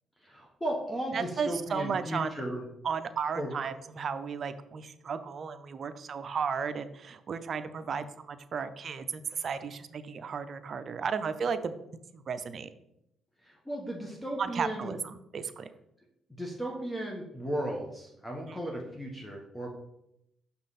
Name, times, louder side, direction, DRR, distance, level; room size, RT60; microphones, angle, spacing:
voice 1, 0.2-2.6 3.4-3.5 13.4-15.0 16.4-19.7, right 1 dB, 10° left, 0 dB, 1.3 m, -35 dB
voice 2, 1.1-2.3 2.8-11.7 12.1-12.7 14.4-15.7, right 6 dB, 50° right, 10 dB, 0.6 m, -34 dB
6.3 x 5.6 x 4.2 m, 0.80 s
cardioid pair, 90°, 0 cm